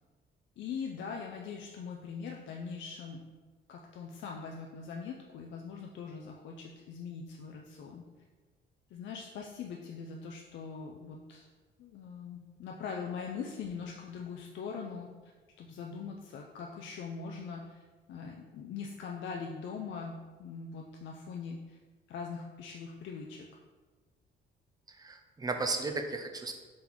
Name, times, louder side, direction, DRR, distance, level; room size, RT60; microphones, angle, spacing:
voice 1, 0.6-3.3 3.7-8.0 8.9-11.5 11.8-15.1 15.6-17.8 18.1-21.8 22.1-23.5, left 5 dB, 70° left, 0 dB, 0.4 m, -42 dB
voice 2, 24.9-26.6, right 3 dB, 20° right, 5 dB, 0.4 m, -35 dB
3.8 x 3.7 x 2.9 m, 1.4 s
cardioid pair, 90°, 20 cm